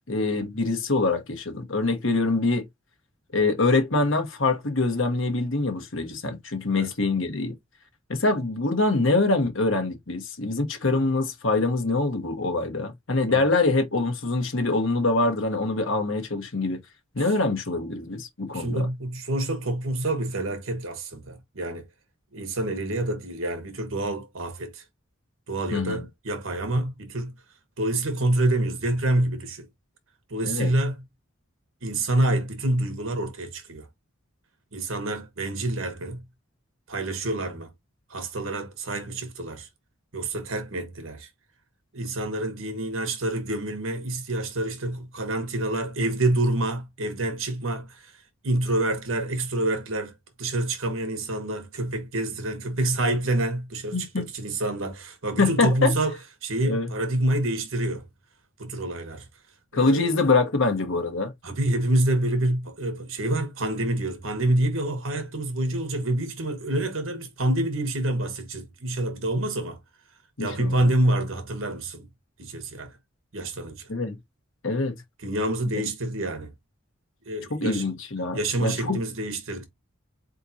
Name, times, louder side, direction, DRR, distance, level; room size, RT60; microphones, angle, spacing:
voice 1, 0.1-2.7 3.3-7.6 8.1-16.8 17.1-18.9 25.7-26.1 30.4-30.7 53.9-54.3 55.4-55.9 56.6-56.9 59.7-61.3 70.4-70.9 73.9-74.2 74.6-74.9 75.7-75.8 77.5-79.0, left 3 dB, 65° left, 1.2 m, -24 dB
voice 2, 18.5-21.8 22.3-24.8 25.5-27.3 27.8-29.7 30.3-31.0 31.8-33.9 34.7-36.2 36.9-37.7 38.1-39.7 40.1-41.3 41.9-48.1 48.4-50.1 50.4-56.2 56.4-58.0 58.6-59.2 59.7-60.1 61.4-69.8 70.4-72.0 72.4-72.9 73.3-73.9 75.2-76.5 77.3-77.8 78.3-79.7, right 1 dB, 75° right, 1.4 m, -27 dB
4.3 x 3.7 x 2.8 m
head